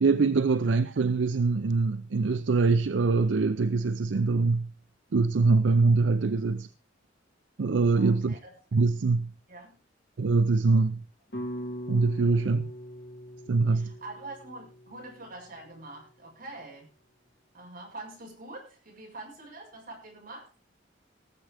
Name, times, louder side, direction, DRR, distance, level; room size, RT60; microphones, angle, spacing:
voice 1, 0.0-4.7 5.1-6.7 7.6-8.4 8.7-9.3 10.2-11.0 11.9-12.7 13.5-13.9, right 4 dB, 75° right, 0.5 m, -24 dB
voice 2, 7.9-8.5 9.5-9.8 13.7-16.9 17.5-20.5, right 2 dB, 50° right, 6.9 m, -45 dB
sound 1, 11.3-15.6, equal, 65° left, 2.8 m, -41 dB
18.5 x 7.5 x 4.9 m
head